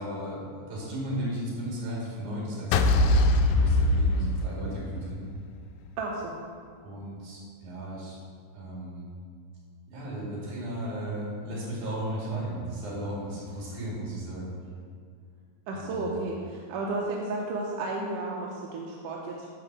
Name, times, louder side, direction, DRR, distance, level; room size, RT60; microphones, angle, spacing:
voice 1, 0.0-5.2 6.8-8.2 8.5-9.1 9.9-14.5 15.7-16.1, right 1 dB, 55° right, -5 dB, 3.6 m, -35 dB
sound 1, 2.7-5.1, left 2 dB, 85° left, 2.4 m, -22 dB
voice 2, 6.0-6.3 15.7-19.5, right 2 dB, 75° right, -2 dB, 2.1 m, -33 dB
10.5 x 4.3 x 6.0 m, 2.1 s
omnidirectional pair, 4.3 m